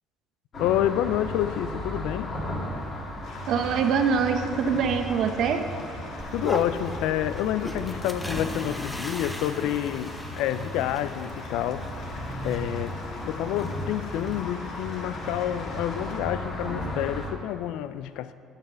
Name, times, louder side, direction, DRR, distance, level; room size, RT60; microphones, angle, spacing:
sound 1, 0.5-17.3, left 1 dB, 50° left, 2.5 m, -35 dB
voice 1, 0.6-2.3 6.3-11.9 12.4-13.0 13.3-18.3, left 12 dB, 80° left, 14 dB, 0.3 m, -28 dB
sound 2, 3.2-16.2, left 2 dB, 65° left, 2.1 m, -46 dB
voice 2, 3.5-5.6, right 6 dB, 65° right, 6 dB, 0.8 m, -24 dB
sound 3, 6.2-14.4, left 1 dB, 5° left, 0.9 m, -38 dB
8.2 x 5.8 x 6.8 m, 2.4 s
supercardioid pair, 85°, 0 cm